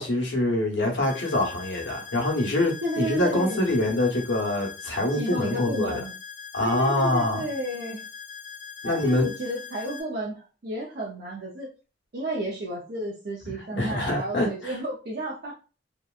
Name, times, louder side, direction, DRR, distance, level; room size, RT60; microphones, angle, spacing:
voice 1, 0.0-6.0 6.5-7.4 8.8-9.3 13.7-14.7, left 1 dB, 80° left, 0.9 m, -25 dB
sound 1, 1.0-10.0, left 6 dB, 50° left, 0.4 m, -41 dB
voice 2, 2.8-3.6 5.1-6.1 6.6-8.0 8.8-11.7 12.1-15.5, right 1 dB, 60° right, 0.6 m, -32 dB
2.8 x 2.1 x 2.3 m
head